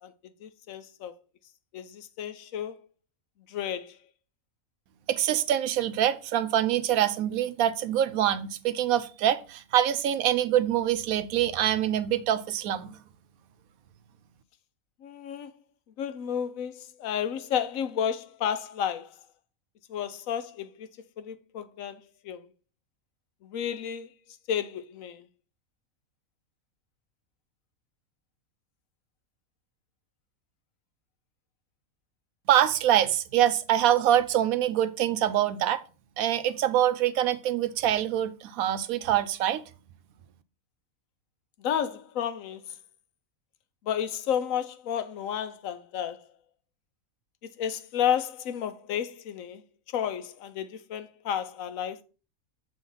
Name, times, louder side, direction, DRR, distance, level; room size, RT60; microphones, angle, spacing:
voice 1, 0.4-1.1 1.7-2.8 3.5-4.0 15.0-15.5 16.0-19.1 19.9-20.9 21.2-22.0 22.2-22.4 23.4-24.1 24.5-25.2 41.6-42.7 43.8-46.2 47.6-49.6 49.9-52.0, left 9 dB, 70° left, 1.0 m, -31 dB
voice 2, 5.1-13.0 32.5-35.8 36.2-39.6, right 11 dB, 75° right, 1.0 m, -25 dB
7.2 x 3.1 x 5.5 m
omnidirectional pair, 1.5 m